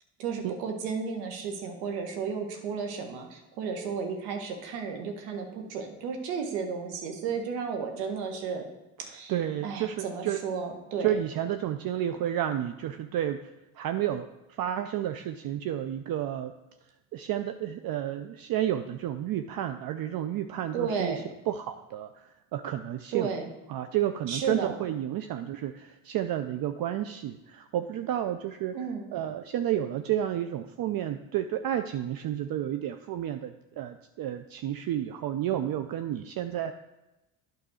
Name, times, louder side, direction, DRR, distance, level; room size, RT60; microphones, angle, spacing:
voice 1, 0.2-8.6 9.0-9.3 9.6-11.1 20.7-21.2 23.1-23.5 24.3-24.7 28.7-29.1, right 5 dB, 85° right, 4 dB, 1.4 m, -33 dB
voice 2, 9.0-10.4 11.0-16.5 17.1-23.3 23.7-28.8 29.1-36.7, right 11 dB, 50° right, 9 dB, 0.6 m, -31 dB
8.8 x 4.0 x 6.3 m, 0.99 s
supercardioid pair, 70°, 45 cm